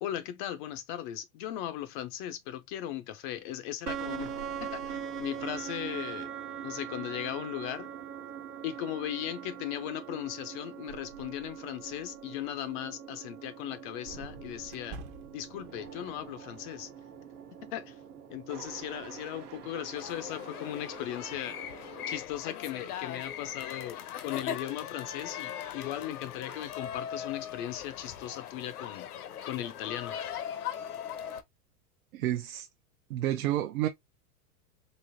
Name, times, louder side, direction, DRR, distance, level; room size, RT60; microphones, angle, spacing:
voice 1, 0.0-4.3 4.6-6.3 6.6-7.9 8.6-15.0 15.3-16.9 17.7-17.9 18.3-21.6 22.1-29.1 29.5-30.2, left 12 dB, 35° left, 0.4 m, -37 dB
sound 1, 3.9-22.2, right 8 dB, 85° right, 1.2 m, -42 dB
sound 2, 12.4-12.6 14.7-15.7, right 3 dB, 40° right, 0.8 m, -46 dB
sound 3, 19.9-31.4, left 9 dB, 85° left, 0.8 m, -39 dB
voice 2, 32.1-32.7 33.1-33.9, right 13 dB, 70° right, 0.7 m, -30 dB
4.0 x 3.0 x 2.5 m
hypercardioid pair, 115°, 44 cm